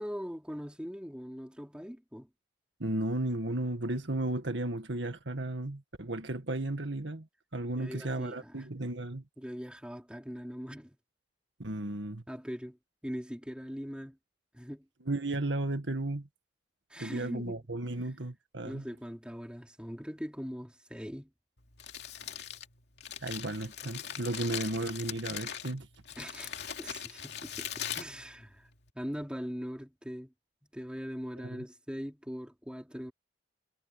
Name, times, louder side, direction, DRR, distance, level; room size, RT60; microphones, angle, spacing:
voice 1, 0.0-2.3 7.8-8.7 9.4-11.0 12.3-12.8 13.0-14.2 14.5-14.9 16.9-17.6 18.6-21.3 26.2-28.7 29.0-30.3 30.6-33.1, equal, 5° right, 3.6 m, -41 dB
voice 2, 2.8-7.3 7.5-9.2 11.6-12.2 15.1-16.3 17.0-18.9 23.2-25.9 31.4-31.6, right 1 dB, 70° right, 1.9 m, -34 dB
Crumpling crinkling, 21.6-28.9, left 9 dB, 60° left, 2.8 m, -41 dB
head